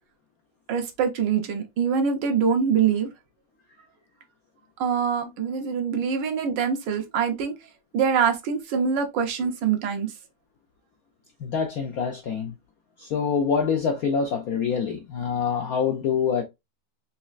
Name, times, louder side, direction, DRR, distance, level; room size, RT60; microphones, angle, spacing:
voice 1, 0.7-3.1 4.8-7.5 7.9-10.1, right 7 dB, 70° right, 1.3 m, -24 dB
voice 2, 11.4-12.5 13.0-16.4, left 6 dB, 75° left, 0.8 m, -25 dB
4.2 x 3.0 x 2.4 m
omnidirectional pair, 2.2 m